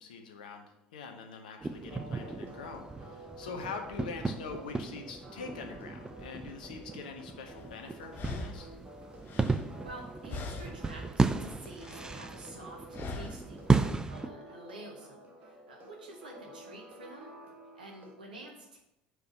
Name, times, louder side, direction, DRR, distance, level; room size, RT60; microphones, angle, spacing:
voice 1, 0.0-8.7, left 5 dB, 75° left, 5 dB, 0.9 m, -44 dB
sound 1, 1.6-14.3, right 4 dB, 15° right, 0.5 m, -34 dB
sound 2, 1.9-18.1, right 1 dB, 40° right, 1.5 m, -51 dB
sound 3, 7.6-7.7 8.1-10.0 10.3-11.0 11.3-12.2 12.9-13.6, left 3 dB, 45° left, 0.8 m, -42 dB
voice 2, 9.8-17.4 17.7-18.8, right 1 dB, 80° right, 0 dB, 1.4 m, -49 dB
4.9 x 4.9 x 6.2 m, 0.88 s
figure-of-eight pair, 60°, 5 cm